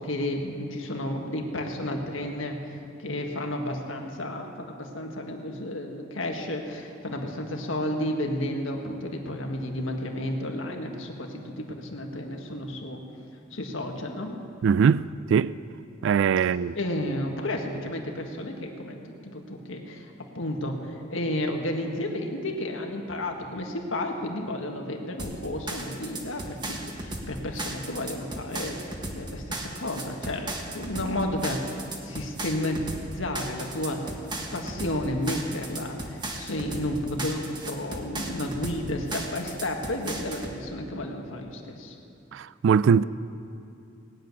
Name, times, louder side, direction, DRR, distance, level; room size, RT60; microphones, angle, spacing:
voice 1, 0.0-13.0 13.5-14.4 16.8-34.1 34.5-42.0, left 1 dB, 75° left, 1.7 m, -32 dB
voice 2, 14.6-15.5 16.0-16.7 42.3-43.0, right 6 dB, 65° right, 0.3 m, -21 dB
sound 1, 25.2-40.6, right 2 dB, 25° right, 1.5 m, -36 dB
19.0 x 7.8 x 9.5 m
head